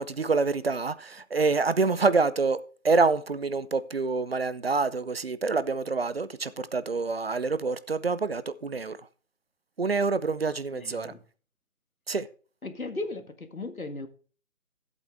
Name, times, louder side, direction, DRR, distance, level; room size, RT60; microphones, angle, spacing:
voice 1, 0.0-9.0 9.8-11.1 12.1-12.3, right 4 dB, 45° right, 0.7 m, -27 dB
voice 2, 10.7-11.2 12.6-14.1, left 2 dB, 85° left, 1.9 m, -36 dB
14.0 x 8.2 x 3.4 m
figure-of-eight pair, 155°, 41 cm